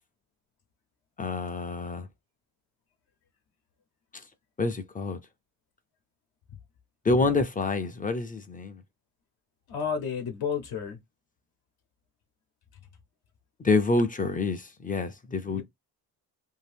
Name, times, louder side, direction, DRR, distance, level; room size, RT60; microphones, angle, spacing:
voice 1, 1.2-2.1 4.6-5.2 7.0-8.8 13.6-15.6, left 3 dB, 20° left, 0.4 m, -27 dB
voice 2, 9.7-11.0 15.4-15.6, left 6 dB, 70° left, 0.8 m, -31 dB
2.7 x 2.5 x 3.4 m
cardioid pair, 100°, 39 cm